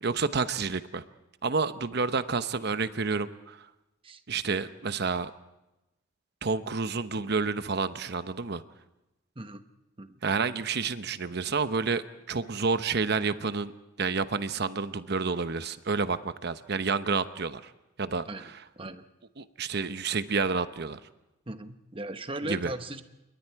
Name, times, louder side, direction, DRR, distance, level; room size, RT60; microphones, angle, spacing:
voice 1, 0.0-1.0 1.4-3.6 4.3-5.3 6.4-8.6 10.2-13.7 14.0-17.7 18.0-18.5 19.4-21.0 22.5-22.7, right 4 dB, 55° right, 12 dB, 0.9 m, -29 dB
voice 2, 18.3-19.0 21.5-23.0, right 2 dB, 25° right, 9 dB, 1.1 m, -38 dB
28.0 x 22.5 x 4.7 m, 0.96 s
head